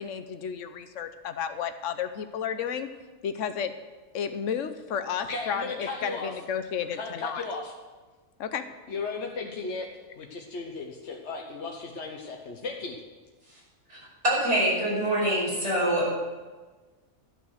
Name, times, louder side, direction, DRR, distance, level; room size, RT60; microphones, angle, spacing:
voice 1, 0.0-2.9 3.2-3.7 4.1-7.4 8.4-8.7, left 7 dB, 85° left, 9 dB, 1.1 m, -32 dB
voice 2, 5.3-6.3 6.9-7.7 8.9-9.9 10.2-13.0, left 3 dB, 65° left, 0 dB, 1.4 m, -35 dB
voice 3, 14.2-16.1, right 1 dB, 70° right, -5 dB, 5.8 m, -25 dB
13.0 x 9.1 x 6.4 m, 1.3 s
omnidirectional pair, 1.3 m